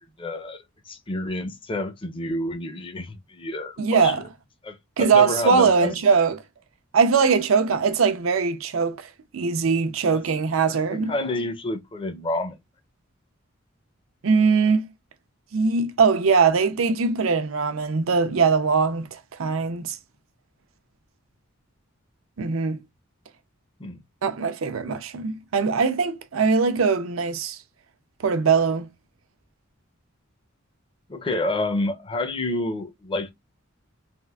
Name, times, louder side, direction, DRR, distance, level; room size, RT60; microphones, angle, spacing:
voice 1, 0.2-4.1 4.6-6.0 10.1-10.2 10.7-12.6 23.8-24.0 31.1-33.3, left 2 dB, 25° left, 0.6 m, -29 dB
voice 2, 3.8-4.3 5.0-6.4 6.9-11.1 14.2-14.9 15.5-20.0 22.4-22.8 24.2-27.6 28.2-28.9, right 5 dB, 80° right, 0.6 m, -21 dB
3.5 x 2.5 x 2.3 m
head